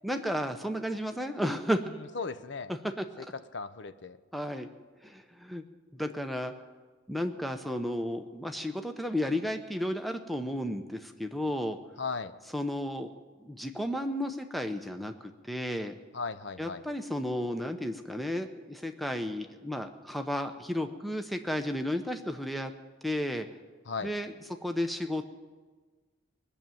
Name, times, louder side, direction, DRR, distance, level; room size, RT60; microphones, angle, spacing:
voice 1, 0.0-1.8 2.7-3.3 4.3-4.7 5.0-5.6 5.9-6.5 7.1-11.8 12.5-13.1 13.4-15.9 16.6-22.7 23.0-23.5 24.0-24.3 24.6-25.4, equal, ahead, 6 dB, 0.7 m, -33 dB
voice 2, 1.9-2.7 3.5-4.2 12.0-12.3 16.1-16.8 23.9-24.1, left 4 dB, 60° left, 12 dB, 0.7 m, -36 dB
20.5 x 7.0 x 9.1 m, 1.4 s
head